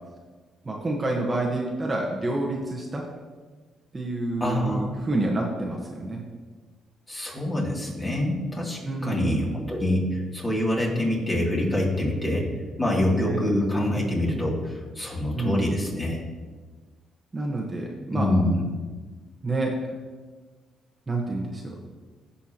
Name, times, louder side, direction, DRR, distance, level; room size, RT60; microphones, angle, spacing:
voice 1, 0.6-3.0 3.9-6.2 8.8-9.5 13.2-13.4 15.3-15.6 17.3-18.3 19.4-19.7 21.1-21.7, right 2 dB, 25° right, -2 dB, 1.2 m, -28 dB
voice 2, 4.4-4.9 7.1-12.5 12.8-16.2 18.1-18.6, left 1 dB, 20° left, -3 dB, 2.7 m, -25 dB
15.0 x 5.6 x 2.9 m, 1.4 s
cardioid pair, 90°, 0 cm